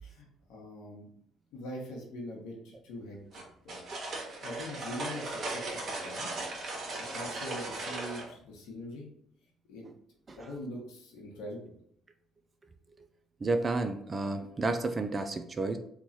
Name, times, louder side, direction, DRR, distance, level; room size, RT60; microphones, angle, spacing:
voice 1, 0.0-1.1 1.5-3.8 4.4-6.3 7.0-9.1 9.7-9.9 10.4-11.7, left 1 dB, 80° left, -3 dB, 0.9 m, -43 dB
sound 1, 3.3-8.3, right 2 dB, 50° right, 1.0 m, -37 dB
voice 2, 13.4-15.8, right 3 dB, 30° right, 7 dB, 0.3 m, -31 dB
3.0 x 2.3 x 4.0 m, 0.70 s
supercardioid pair, 75°, 0 cm